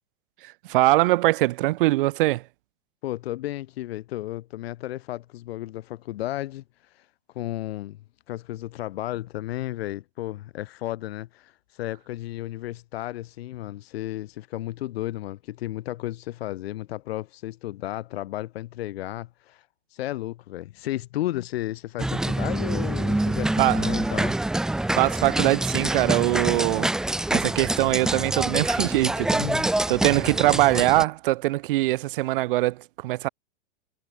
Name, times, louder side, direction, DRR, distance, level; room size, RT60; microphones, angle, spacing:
voice 1, 0.4-2.4 23.6-23.8 25.0-26.9 27.3-29.5 29.9-33.3, right 18 dB, 45° right, 2.4 m, -22 dB
voice 2, 3.0-7.1 7.3-8.0 8.3-24.4 29.4-29.8, left 15 dB, 55° left, 5.1 m, -33 dB
sound 1, 22.0-31.0, right 1 dB, ahead, 0.7 m, -26 dB
supercardioid pair, 170°, 37 cm